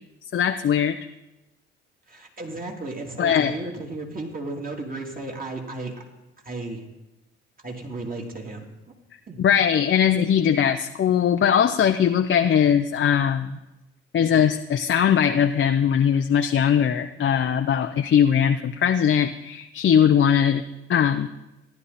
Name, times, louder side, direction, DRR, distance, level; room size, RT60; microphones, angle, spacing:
voice 1, 0.3-1.0 3.2-3.5 9.4-13.6 14.1-20.6 20.9-21.3, left 8 dB, 40° left, 6 dB, 0.8 m, -20 dB
voice 2, 2.1-5.9 6.4-6.8 7.6-8.7 9.3-9.4, right 2 dB, 25° right, 0 dB, 3.4 m, -34 dB
15.0 x 11.0 x 4.3 m, 0.95 s
hypercardioid pair, 55°, 31 cm